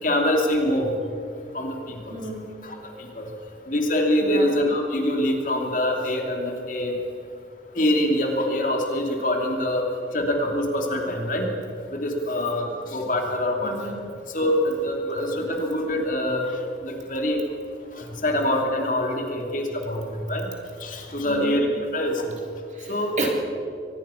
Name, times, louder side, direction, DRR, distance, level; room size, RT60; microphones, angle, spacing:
voice 1, 0.0-0.9 1.5-2.2 2.6-3.3 3.7-6.9 7.7-9.9 10.1-11.5 11.9-13.9 14.3-16.5 16.8-17.4 17.9-20.5 20.8-21.7 21.9-22.3 22.9-23.2, left 1 dB, 45° left, 1 dB, 2.9 m, -25 dB
voice 2, 2.1-2.5 4.2-4.5 13.6-14.0 21.2-21.6 22.7-23.3, right 2 dB, 40° right, 0 dB, 3.2 m, -32 dB
23.5 x 20.0 x 5.8 m, 2.5 s
head